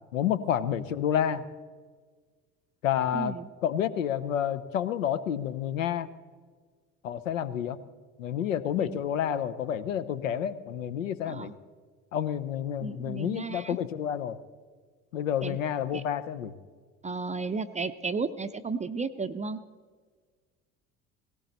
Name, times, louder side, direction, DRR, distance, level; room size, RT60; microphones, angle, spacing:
voice 1, 0.1-1.4 2.8-3.3 3.6-6.1 7.0-7.8 8.2-11.5 12.1-14.4 15.1-16.5, left 9 dB, 80° left, 14 dB, 0.8 m, -29 dB
voice 2, 3.1-3.5 8.8-9.0 11.3-11.5 12.8-13.8 15.4-15.6 15.9-16.0 17.0-19.6, right 4 dB, 20° right, 10 dB, 0.5 m, -33 dB
17.5 x 17.5 x 4.1 m, 1.5 s
figure-of-eight pair, 60°, 39 cm